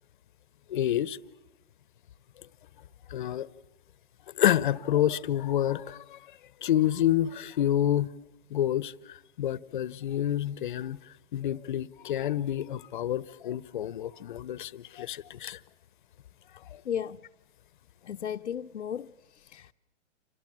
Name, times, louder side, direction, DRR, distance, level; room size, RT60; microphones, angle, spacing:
voice 1, 0.7-1.2 3.1-3.5 4.3-6.2 6.6-8.1 8.5-11.0 11.3-15.6, left 11 dB, 40° left, 1.0 m, -28 dB
voice 2, 16.8-17.2 18.0-19.7, left 9 dB, 75° left, 0.9 m, -35 dB
29.0 x 25.5 x 7.5 m
hypercardioid pair, 155°, 36 cm